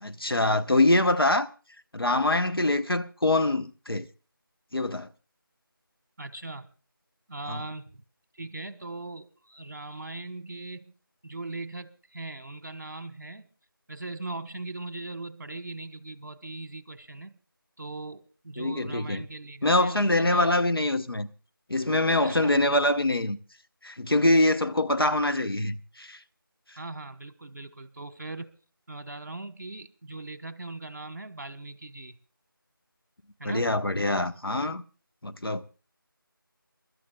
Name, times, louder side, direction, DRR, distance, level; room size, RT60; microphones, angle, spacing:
voice 1, 0.0-1.5 1.9-4.0 4.7-5.1 7.5-7.6 18.6-19.2 19.6-21.3 21.7-23.4 23.8-26.2 33.4-34.8 35.2-35.6, left 2 dB, 80° left, 1.4 m, -24 dB
voice 2, 6.2-6.7 7.3-8.0 8.3-10.9 11.2-13.5 13.9-17.3 17.8-20.6 22.2-22.8 26.8-28.5 28.9-32.2 33.4-33.7, right 2 dB, 50° right, 1.5 m, -39 dB
28.5 x 13.0 x 2.4 m
figure-of-eight pair, 170°, 12 cm